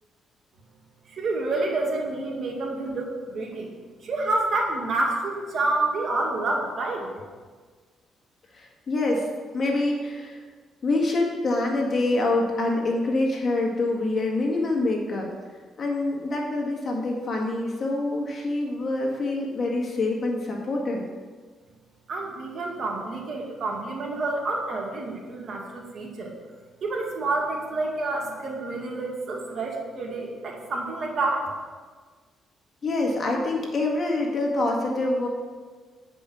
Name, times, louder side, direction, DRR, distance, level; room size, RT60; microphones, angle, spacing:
voice 1, 1.1-3.7 4.0-7.1 22.1-26.3 26.8-31.5, right 2 dB, 50° right, -1 dB, 1.9 m, -28 dB
voice 2, 8.5-10.4 10.8-15.3 15.8-21.0 32.8-35.3, left 2 dB, 45° left, 0 dB, 1.9 m, -26 dB
8.6 x 5.3 x 6.3 m, 1.5 s
cardioid pair, 90°, 0 cm